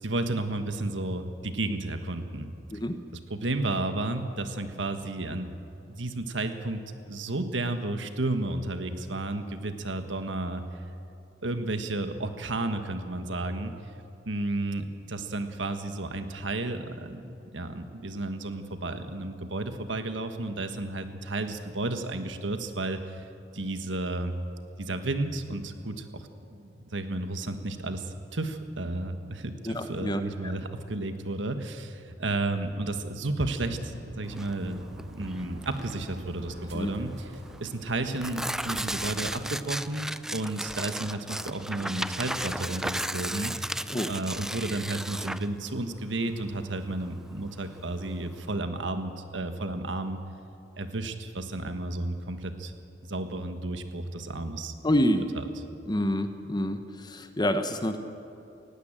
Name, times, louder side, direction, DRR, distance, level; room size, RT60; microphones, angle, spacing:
voice 1, 0.0-2.5 3.3-5.5 5.9-6.8 7.1-10.6 11.4-13.7 14.2-23.2 23.5-24.4 24.8-34.8 35.1-37.3 37.6-43.7 44.1-50.2 50.8-52.7 53.0-54.7 55.3-55.5, right 2 dB, 85° right, 8 dB, 1.5 m, -32 dB
voice 2, 29.6-30.5 36.7-36.9 43.9-44.1 54.8-55.2 55.9-58.0, left 1 dB, 25° left, 8 dB, 1.0 m, -27 dB
sound 1, 33.4-39.5, right 1 dB, 65° right, 1.7 m, -46 dB
Tearing, 34.3-48.5, right 1 dB, 5° right, 0.4 m, -36 dB
19.0 x 16.0 x 8.8 m, 2.6 s
head